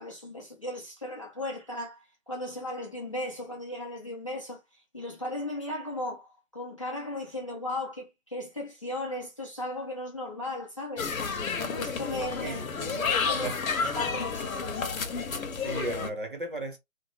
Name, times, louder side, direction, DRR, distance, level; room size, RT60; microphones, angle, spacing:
voice 1, 0.0-11.1 11.7-12.6 12.9-14.8, left 1 dB, 25° left, 0.6 m, -36 dB
sound 1, 11.0-16.1, left 5 dB, 85° left, 0.8 m, -31 dB
voice 2, 12.4-13.0 13.4-13.6 15.6-16.8, right 1 dB, 40° right, 0.6 m, -35 dB
2.6 x 2.2 x 2.9 m
hypercardioid pair, 170°, 40 cm